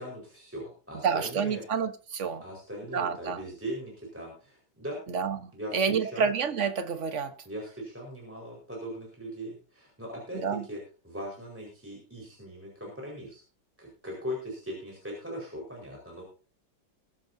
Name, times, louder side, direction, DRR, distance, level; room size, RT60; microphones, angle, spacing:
voice 1, 0.0-1.6 2.4-5.0 5.5-6.3 7.4-10.8 11.0-13.4 13.8-16.2, equal, 5° right, 4.8 m, -39 dB
voice 2, 1.0-2.4 2.8-3.4 5.1-7.4 10.3-10.6, right 6 dB, 45° right, 1.4 m, -29 dB
21.5 x 11.0 x 2.8 m
omnidirectional pair, 2.0 m